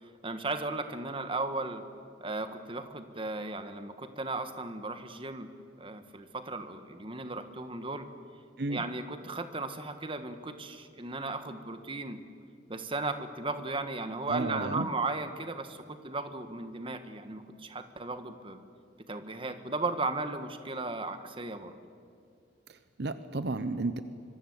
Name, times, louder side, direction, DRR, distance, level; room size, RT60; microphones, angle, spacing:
voice 1, 0.2-1.8 2.2-5.5 5.8-8.1 8.7-12.2 12.7-18.6 19.1-21.7, right 3 dB, 30° right, 9 dB, 1.4 m, -36 dB
voice 2, 14.3-14.9 22.7-24.0, right 2 dB, 60° right, 12 dB, 0.8 m, -33 dB
25.0 x 23.5 x 8.0 m, 2.4 s
head